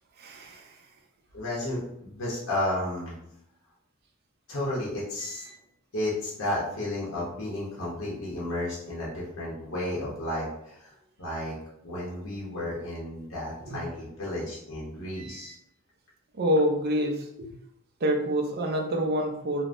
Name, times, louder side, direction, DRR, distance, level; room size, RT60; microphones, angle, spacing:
voice 1, 0.2-0.7 13.7-13.8 16.3-17.5 18.0-19.6, equal, 45° right, 2 dB, 0.5 m, -27 dB
voice 2, 1.3-3.1 4.5-5.5 5.9-10.9 11.2-11.6 11.8-15.5, left 1 dB, 60° left, -6 dB, 0.7 m, -32 dB
3.3 x 2.1 x 2.5 m, 0.76 s
head